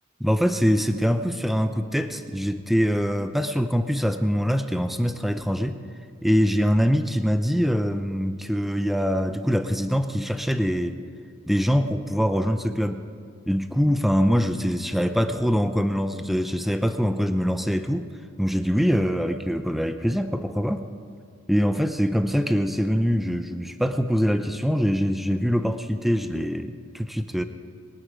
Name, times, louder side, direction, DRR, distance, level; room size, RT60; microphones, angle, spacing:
voice 1, 0.2-5.8 6.2-11.0 11.5-13.1 13.5-18.1 18.4-20.9 21.5-27.4, equal, ahead, 8 dB, 0.6 m, -23 dB
22.5 x 9.9 x 5.0 m, 2.3 s
head